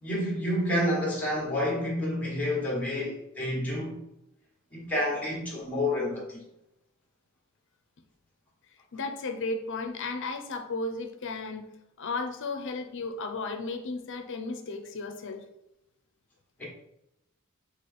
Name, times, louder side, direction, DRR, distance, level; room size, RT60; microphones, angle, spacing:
voice 1, 0.0-4.0 4.7-6.4 16.6-16.7, left 1 dB, 5° left, 1.4 m, -29 dB
voice 2, 8.9-11.7 12.0-15.4, left 3 dB, 60° left, 0.6 m, -34 dB
4.1 x 3.0 x 4.2 m
head